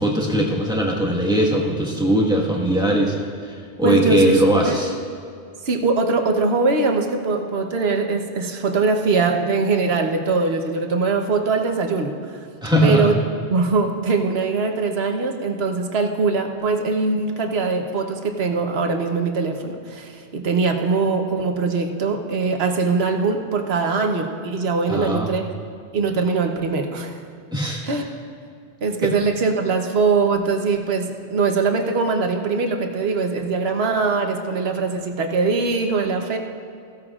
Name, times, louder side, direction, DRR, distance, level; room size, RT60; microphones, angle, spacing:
voice 1, 0.0-3.2 3.4-4.9 12.6-13.1 24.9-25.4 27.5-27.8 29.0-29.1, right 1 dB, 5° right, -3 dB, 1.4 m, -20 dB
voice 2, 3.8-4.7 5.6-12.4 12.8-13.1 13.5-25.4 25.9-27.2 27.8-28.0 28.8-36.4, right 4 dB, 70° right, 4 dB, 1.2 m, -22 dB
15.5 x 13.5 x 2.4 m, 2.4 s
omnidirectional pair, 1.1 m